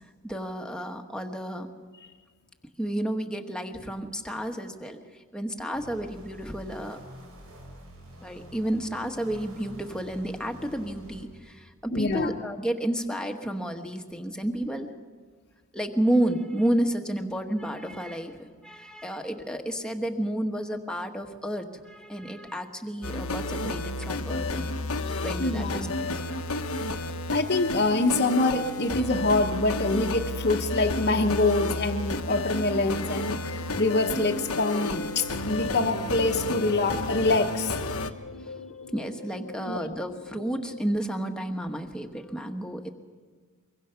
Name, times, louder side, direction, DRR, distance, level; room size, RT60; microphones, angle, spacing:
voice 1, 0.2-1.7 2.8-5.0 5.3-7.0 8.2-14.9 15.7-24.7 25.0-25.7 26.0-27.3 38.4-38.5 38.8-42.9, right 1 dB, 5° left, 3 dB, 1.3 m, -31 dB
sound 1, 5.7-11.3, equal, 80° right, 6.0 m, -47 dB
voice 2, 11.9-12.3 25.4-25.9 27.3-37.8 39.7-39.8, left 2 dB, 50° left, -1 dB, 1.1 m, -25 dB
sound 2, 23.0-38.1, left 2 dB, 80° left, 1.2 m, -31 dB
sound 3, 32.8-40.8, left 4 dB, 65° left, 0.7 m, -42 dB
23.5 x 23.5 x 5.8 m, 1.5 s
head